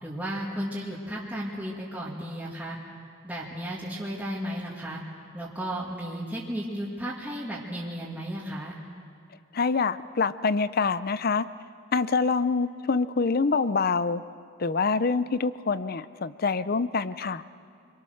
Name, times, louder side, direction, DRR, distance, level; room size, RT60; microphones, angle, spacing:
voice 1, 0.0-2.8 3.2-5.0 5.3-8.8, equal, 10° right, -6 dB, 2.1 m, -34 dB
voice 2, 9.5-11.5 11.9-14.2 14.6-17.4, left 4 dB, 50° left, 15 dB, 0.6 m, -25 dB
27.0 x 22.5 x 6.5 m, 2.3 s
head